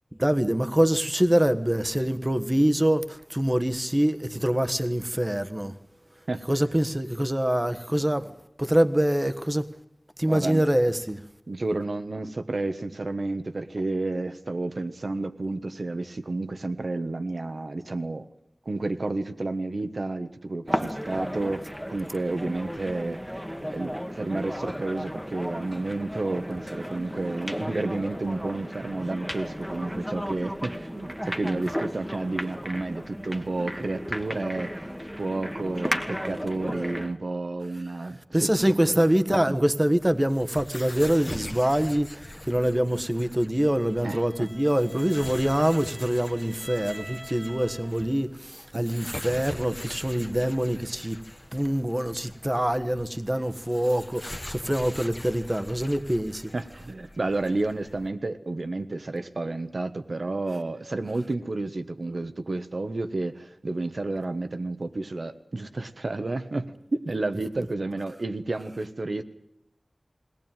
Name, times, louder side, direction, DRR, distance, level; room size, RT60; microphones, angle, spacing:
voice 1, 0.2-5.8 6.5-8.3 8.6-9.7 10.2-11.2 38.3-51.2 51.5-56.5, right 1 dB, 20° right, 1.3 m, -25 dB
voice 2, 10.3-10.6 11.5-18.3 18.6-34.9 35.2-38.5 38.9-39.5 44.0-44.5 56.5-69.2, right 2 dB, 70° right, 1.4 m, -31 dB
sound 1, 20.7-37.2, equal, ahead, 1.5 m, -34 dB
sound 2, 40.0-58.1, left 1 dB, 20° left, 1.3 m, -43 dB
Bowed string instrument, 43.5-48.2, right 1 dB, 85° right, 5.9 m, -46 dB
21.0 x 18.0 x 9.1 m
wide cardioid pair, 55°, 0 cm